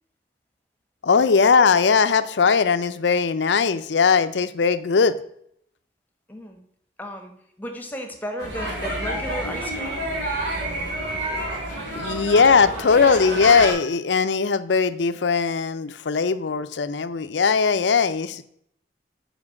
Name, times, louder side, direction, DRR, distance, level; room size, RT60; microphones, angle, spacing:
voice 1, 1.0-5.1 11.9-18.4, left 5 dB, 80° left, 12 dB, 0.5 m, -19 dB
voice 2, 6.3-6.6 7.0-7.3 7.6-10.1, equal, 10° left, 4 dB, 1.1 m, -34 dB
sound 1, 8.4-13.7, right 1 dB, 80° right, 2.8 m, -29 dB
6.1 x 5.1 x 6.3 m, 0.70 s
head